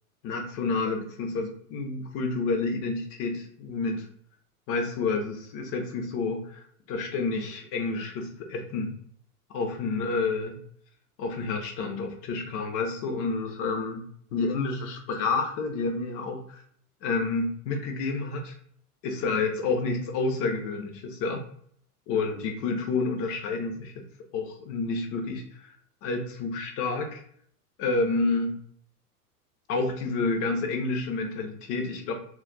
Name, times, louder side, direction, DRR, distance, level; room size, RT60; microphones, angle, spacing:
voice 1, 0.2-4.1 4.7-8.9 9.5-10.5 11.2-14.1 14.3-16.4 17.0-18.5 19.0-21.4 22.1-23.9 24.3-25.7 26.0-27.2 27.8-28.6 29.7-32.1, left 3 dB, 30° left, 3 dB, 0.5 m, -29 dB
2.2 x 2.2 x 3.8 m, 0.62 s
hypercardioid pair, 115°, 46 cm